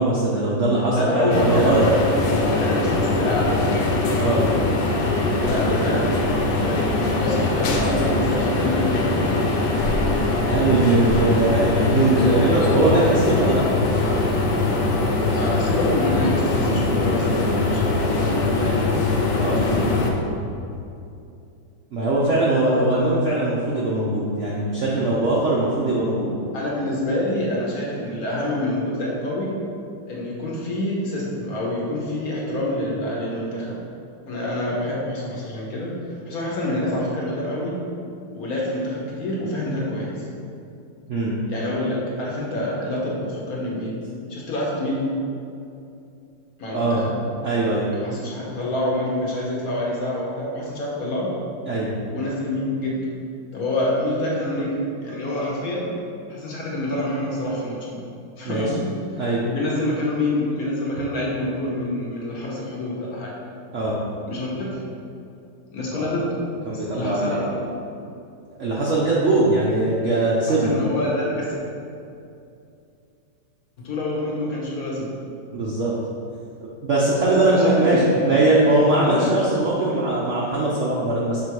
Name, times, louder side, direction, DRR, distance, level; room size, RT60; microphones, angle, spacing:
voice 1, 0.0-1.8 4.2-4.4 10.5-13.6 19.4-19.6 21.9-26.3 41.1-41.4 46.7-47.0 47.4-47.9 51.7-51.9 58.4-58.6 59.2-59.4 63.7-64.0 65.9-66.1 66.7-67.5 68.6-70.7 75.5-75.9 76.8-81.4, right 2 dB, 65° right, -5 dB, 0.7 m, -21 dB
voice 2, 0.9-2.0 2.3-3.7 5.4-6.3 6.6-9.2 15.3-18.8 19.4-20.2 26.5-29.5 30.1-33.8 34.3-37.8 38.3-40.2 41.5-44.0 44.3-45.1 46.6-47.2 47.9-51.3 52.1-53.0 53.5-55.9 56.3-58.0 58.4-58.9 59.4-63.3 64.2-64.8 65.7-66.4 66.7-67.4 70.5-71.6 73.8-75.1 77.2-79.3 79.8-80.0, left 1 dB, 55° left, -4 dB, 1.3 m, -27 dB
sound 1, 1.3-20.1, left 2 dB, 75° left, 1.3 m, -22 dB
5.9 x 3.5 x 4.6 m, 2.6 s
omnidirectional pair, 2.1 m